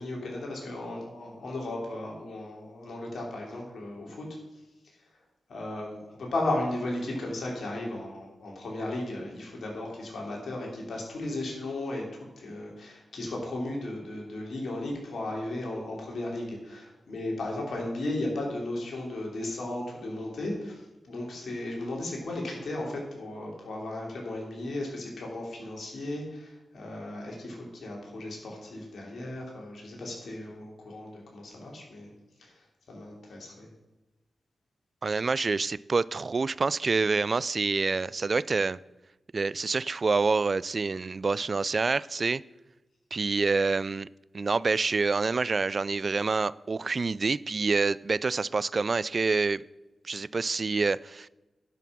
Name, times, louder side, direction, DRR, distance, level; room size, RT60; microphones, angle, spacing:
voice 1, 0.0-4.6 4.9-5.0 5.5-12.1 12.4-32.1 32.4-33.7, left 1 dB, 75° left, 3.2 m, -35 dB
voice 2, 35.0-38.8 39.3-42.4 43.1-44.1 44.3-49.6 50.0-51.3, right 4 dB, 50° right, 0.3 m, -27 dB
11.0 x 5.8 x 6.1 m
supercardioid pair, 40°, 0 cm